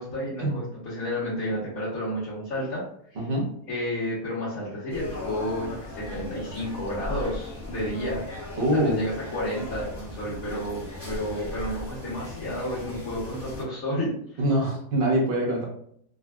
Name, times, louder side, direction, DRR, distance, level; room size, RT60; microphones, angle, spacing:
voice 1, 0.0-2.8 3.1-3.2 3.7-14.4, equal, 70° left, -10 dB, 1.5 m, -31 dB
voice 2, 3.2-3.5 8.6-9.0 14.4-15.6, right 1 dB, 45° right, -2 dB, 1.0 m, -24 dB
sound 1, 4.9-13.6, left 1 dB, 10° left, 0.8 m, -38 dB
3.7 x 2.3 x 2.3 m, 0.66 s
omnidirectional pair, 1.5 m